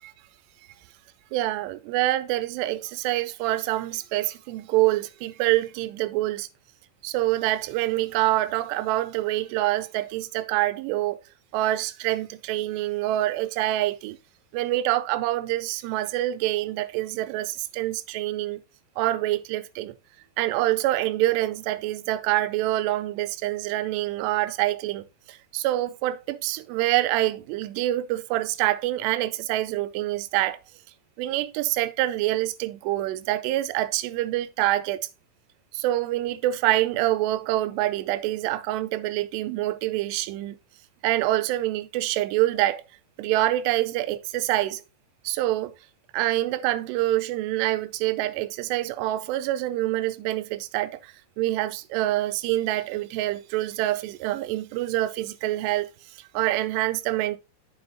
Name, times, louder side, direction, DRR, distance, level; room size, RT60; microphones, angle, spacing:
voice 1, 1.3-6.5 7.0-11.2 11.5-14.2 14.5-18.6 19.0-19.9 20.4-30.6 31.2-35.1 35.7-40.6 41.0-42.8 43.2-44.8 45.2-45.7 46.1-57.4, right 15 dB, 85° right, 2.7 m, -26 dB
7.9 x 7.0 x 2.7 m
omnidirectional pair, 4.8 m